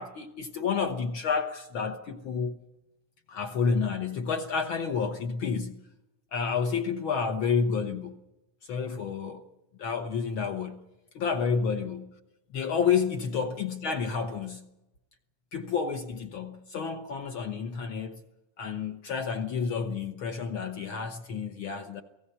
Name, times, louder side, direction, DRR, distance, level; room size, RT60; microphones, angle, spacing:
voice 1, 0.0-2.5 3.3-5.8 6.3-8.2 8.6-9.4 9.8-10.8 11.1-12.1 12.5-14.7 15.5-18.2 18.6-22.0, left 6 dB, 65° left, 1.3 m, -30 dB
29.0 x 18.5 x 5.6 m
omnidirectional pair, 3.6 m